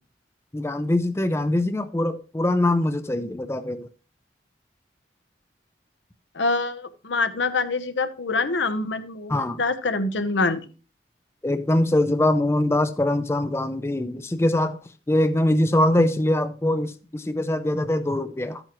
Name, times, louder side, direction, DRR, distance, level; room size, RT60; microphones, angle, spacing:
voice 1, 0.5-3.9 9.3-9.6 11.4-14.8 15.1-18.6, left 1 dB, 15° left, 0.4 m, -23 dB
voice 2, 6.3-10.7, left 3 dB, 85° left, 0.9 m, -25 dB
13.0 x 8.9 x 3.0 m
head